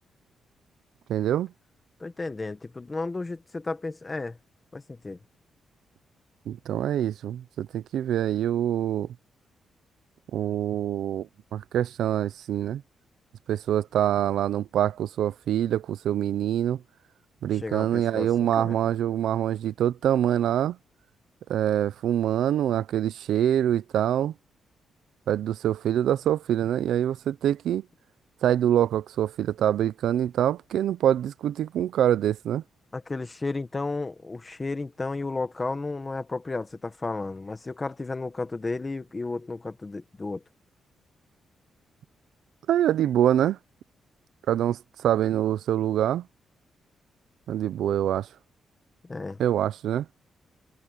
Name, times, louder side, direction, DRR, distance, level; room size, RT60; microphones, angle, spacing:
voice 1, 1.1-1.5 6.5-9.1 10.3-12.8 13.5-16.8 17.4-20.8 21.5-24.3 25.3-27.8 28.4-32.6 42.7-43.6 44.5-46.2 47.5-48.3 49.4-50.1, right 11 dB, 85° right, 0.6 m, -25 dB
voice 2, 2.0-4.4 4.7-5.2 17.6-18.8 32.9-40.4 49.1-49.4, left 3 dB, 20° left, 1.5 m, -33 dB
cardioid pair, 145°, 0 cm